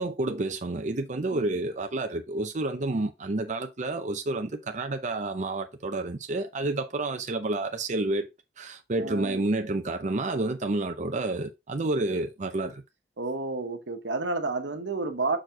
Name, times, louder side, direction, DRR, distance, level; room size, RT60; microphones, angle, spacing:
voice 1, 0.0-8.3 8.6-12.8, right 2 dB, 40° right, 0.6 m, -29 dB
voice 2, 9.0-9.4 13.2-15.4, right 3 dB, 85° right, 1.2 m, -31 dB
6.3 x 4.6 x 3.8 m
head